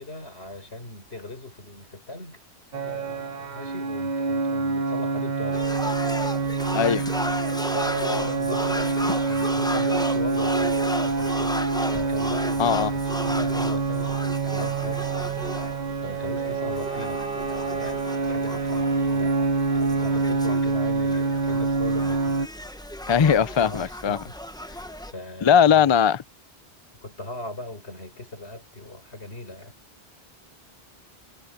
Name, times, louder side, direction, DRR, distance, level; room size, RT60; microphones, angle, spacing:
voice 1, 0.0-2.4 2.7-5.7 7.7-11.6 11.9-15.6 16.0-19.5 19.7-22.4 22.7-22.9 23.2-24.4 25.1-26.0 27.0-29.7, left 2 dB, 75° left, 5.2 m, -38 dB
sound 1, 2.7-22.5, right 4 dB, 45° right, 0.9 m, -26 dB
sound 2, 5.5-25.1, left 1 dB, 5° left, 0.7 m, -35 dB
voice 2, 6.7-7.0 12.6-12.9 23.1-24.2 25.4-26.2, left 8 dB, 40° left, 0.4 m, -19 dB
Bowed string instrument, 16.4-21.1, right 1 dB, 65° right, 7.1 m, -40 dB
omnidirectional pair, 1.1 m